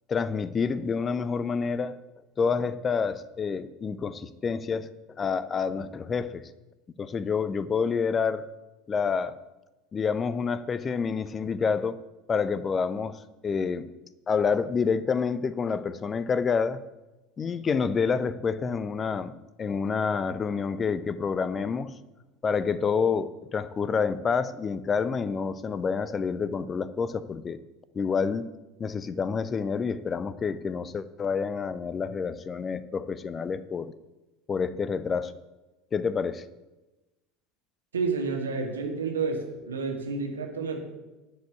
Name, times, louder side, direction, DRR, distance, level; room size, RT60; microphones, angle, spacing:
voice 1, 0.1-2.0 2.4-4.9 5.2-6.5 7.0-8.4 8.9-9.4 9.9-12.0 12.3-13.9 14.3-16.8 17.4-19.3 19.6-21.9 22.4-27.6 27.9-28.4 28.8-33.9 34.5-35.3 35.9-36.5, left 5 dB, 25° left, 15 dB, 0.7 m, -28 dB
voice 2, 37.9-40.9, right 4 dB, 75° right, 2 dB, 2.0 m, -30 dB
11.5 x 5.4 x 8.3 m, 1.1 s
figure-of-eight pair, 70°, 0 cm